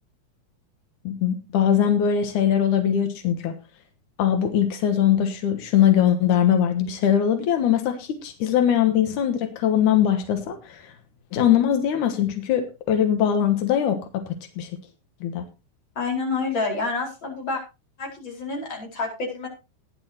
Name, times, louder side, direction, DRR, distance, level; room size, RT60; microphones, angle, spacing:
voice 1, 1.0-3.5 4.2-10.9 11.3-14.7 15.2-15.5, left 9 dB, 80° left, 7 dB, 1.8 m, -21 dB
voice 2, 15.9-17.6 18.0-19.5, left 3 dB, 25° left, 0 dB, 4.8 m, -28 dB
18.5 x 10.5 x 2.9 m, 0.28 s
omnidirectional pair, 5.5 m